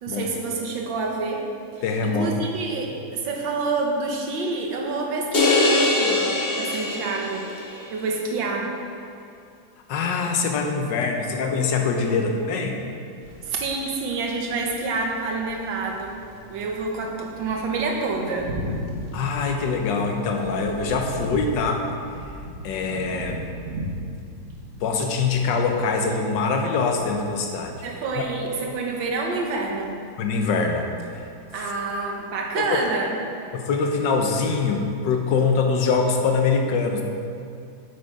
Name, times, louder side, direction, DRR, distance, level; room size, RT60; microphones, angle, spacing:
voice 1, 0.0-8.7 12.1-12.2 13.4-16.2 16.5-18.5 27.8-30.0 31.5-33.1, right 3 dB, 70° right, 1 dB, 1.8 m, -28 dB
voice 2, 1.8-2.3 9.9-12.8 19.1-21.9 22.6-23.5 24.8-27.9 30.2-30.9 31.1-31.2 31.6-31.7 32.6-32.8 33.5-37.0, left 4 dB, 70° left, 3 dB, 1.5 m, -23 dB
sound 1, 5.3-7.7, left 2 dB, 35° left, 1.1 m, -22 dB
sound 2, 13.2-32.9, equal, 45° right, 1.3 m, -38 dB
8.2 x 7.9 x 4.8 m, 2.5 s
omnidirectional pair, 2.2 m